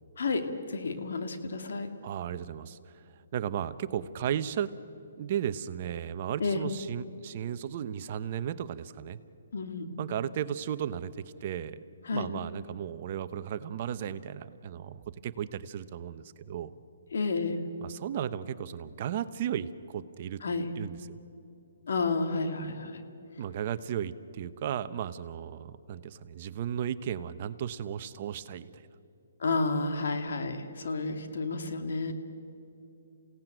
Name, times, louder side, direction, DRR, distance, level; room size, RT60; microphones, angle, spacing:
voice 1, 0.7-1.9 6.4-6.6 9.5-9.9 12.1-12.3 17.1-17.6 20.4-20.6 21.9-23.0 29.4-32.1, left 3 dB, 70° left, 6 dB, 2.5 m, -31 dB
voice 2, 2.0-2.8 3.3-4.7 5.2-9.2 10.0-11.8 12.1-16.7 17.8-20.4 20.8-21.2 23.4-28.9, right 9 dB, 40° right, 13 dB, 0.9 m, -35 dB
28.5 x 17.0 x 9.2 m, 2.8 s
hypercardioid pair, 155°, 0 cm